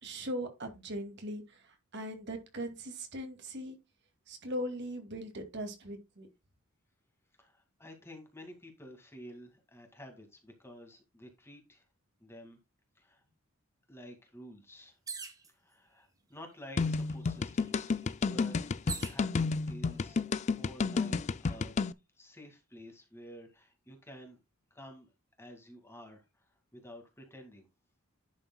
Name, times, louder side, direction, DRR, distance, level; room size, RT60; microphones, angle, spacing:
voice 1, 0.0-3.8 4.3-6.3, equal, 50° right, 2.3 m, -40 dB
voice 2, 7.4-11.8 12.2-12.6 13.0-13.2 13.9-15.0 15.5-18.6 18.8-21.8 22.1-24.4 24.7-25.1 25.4-27.7, equal, 10° left, 2.0 m, -51 dB
sound 1, 15.1-15.5 16.4-16.5 16.8-19.2 20.0-20.5, right 5 dB, 15° right, 1.3 m, -44 dB
sound 2, 16.8-21.9, left 4 dB, 30° left, 0.3 m, -31 dB
11.0 x 7.0 x 2.2 m
head